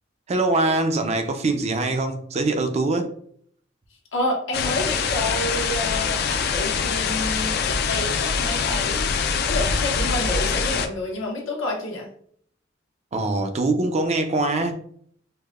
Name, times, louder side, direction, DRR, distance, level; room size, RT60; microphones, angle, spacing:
voice 1, 0.3-3.1 13.1-14.7, right 2 dB, 35° right, 6 dB, 0.4 m, -23 dB
voice 2, 4.1-9.1 9.5-12.1, left 1 dB, 85° left, -1 dB, 0.8 m, -29 dB
sound 1, 4.5-10.9, left 5 dB, 55° left, 0.3 m, -24 dB
4.7 x 2.1 x 2.3 m, 0.63 s
head